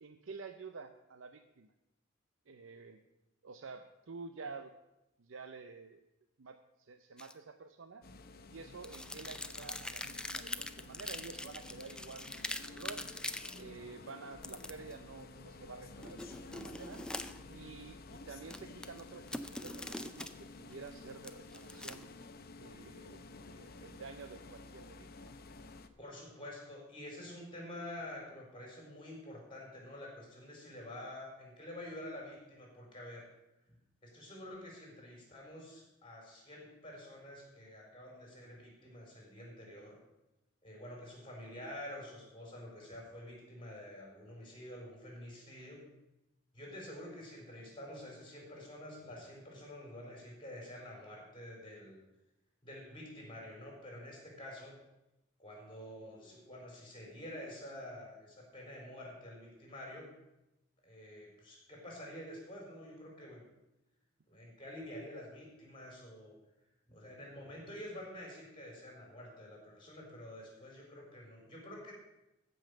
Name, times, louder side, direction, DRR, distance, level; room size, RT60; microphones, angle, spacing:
voice 1, 0.0-1.7 2.5-3.0 3.4-4.7 5.2-6.0 6.4-8.0 8.5-13.0 13.5-17.0 17.5-22.1 22.6-23.2 23.5-25.3, right 4 dB, 85° right, 7 dB, 0.6 m, -50 dB
sound 1, 7.2-7.3 8.8-13.6 14.4-14.9 16.0-17.5 18.4-20.3 20.7-22.1, left 1 dB, 5° left, 0.5 m, -43 dB
sound 2, 8.0-25.9, left 3 dB, 50° left, 0.7 m, -52 dB
voice 2, 26.0-33.3 34.0-40.0 40.6-45.8 46.5-52.0 52.6-54.7 55.4-60.1 60.8-63.4 64.3-66.3 66.9-71.9, left 1 dB, 25° left, -1 dB, 4.3 m, -48 dB
15.0 x 5.5 x 6.7 m, 0.92 s
head